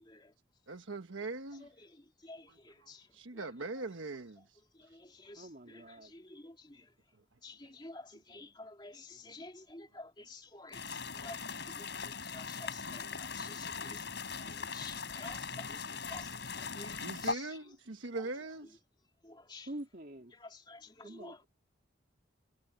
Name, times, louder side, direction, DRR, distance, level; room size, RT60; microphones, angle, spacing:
voice 1, 0.7-1.7 2.5-4.6 9.3-9.4 17.0-18.8, right 3 dB, 85° right, 1.2 m, -42 dB
voice 2, 2.2-3.0 4.9-5.4 6.1-6.8 7.4-10.8 11.1-14.0 14.4-17.0 17.2-17.4 19.2-19.7 20.7-21.4, left 3 dB, 25° left, 2.5 m, -50 dB
voice 3, 5.3-6.1 19.7-20.3 21.0-21.5, right 1 dB, 50° right, 3.4 m, -46 dB
sound 1, 10.7-17.3, left 5 dB, 65° left, 4.7 m, -40 dB
head